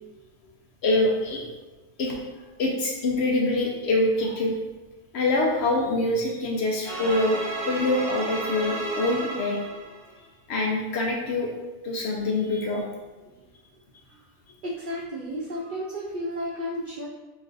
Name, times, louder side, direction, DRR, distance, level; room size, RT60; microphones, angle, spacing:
voice 1, 0.8-1.4 2.0-2.1 2.6-4.5 5.1-7.4 7.6-9.6 10.5-11.5 11.8-12.8, left 2 dB, 65° left, -1 dB, 0.7 m, -25 dB
sound 1, 6.8-10.1, right 2 dB, 20° right, 0.9 m, -32 dB
voice 2, 14.6-17.1, equal, 90° right, -4 dB, 0.4 m, -32 dB
3.1 x 2.4 x 3.8 m, 1.2 s
omnidirectional pair, 1.5 m